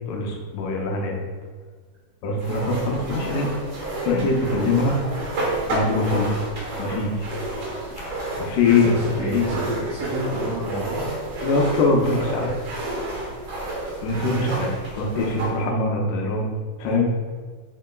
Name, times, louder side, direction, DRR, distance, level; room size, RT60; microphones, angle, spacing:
voice 1, 0.1-1.2 2.2-3.5 4.0-5.0 5.7-6.4 6.8-7.3 8.4-8.9 9.3-9.4 11.4-12.6 14.0-14.7 14.9-16.5 16.8-17.1, left 3 dB, 80° left, 0 dB, 2.2 m, -22 dB
sound 1, 2.4-15.6, right 1 dB, 70° right, 1.2 m, -30 dB
voice 2, 8.7-11.1 14.1-14.4, right 2 dB, 85° right, -7 dB, 1.3 m, -29 dB
5.5 x 3.7 x 2.2 m, 1.5 s
omnidirectional pair, 3.7 m